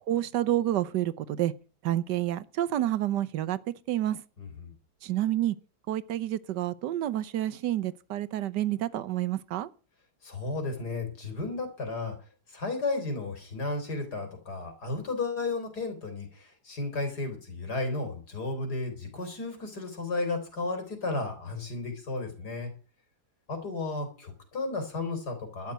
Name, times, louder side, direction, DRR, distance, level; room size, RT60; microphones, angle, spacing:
voice 1, 0.1-1.5 1.8-3.6 3.9-4.2 5.0-5.5 5.9-9.7, right 13 dB, 85° right, 1.4 m, -29 dB
voice 2, 4.4-4.7 10.2-12.1 12.5-22.7 23.5-25.7, left 3 dB, 70° left, 4.2 m, -33 dB
12.0 x 7.4 x 9.1 m
omnidirectional pair, 1.8 m